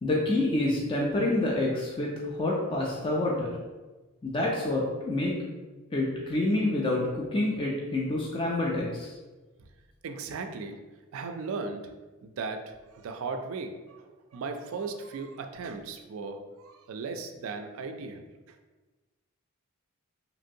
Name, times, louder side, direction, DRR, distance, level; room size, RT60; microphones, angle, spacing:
voice 1, 0.0-3.5 4.2-5.3 5.9-9.1, left 2 dB, 25° left, -3 dB, 0.3 m, -27 dB
voice 2, 10.0-10.8 11.1-11.9 12.2-18.2 18.5-18.6, right 4 dB, 65° right, 6 dB, 0.3 m, -37 dB
3.0 x 2.6 x 2.7 m, 1.2 s
head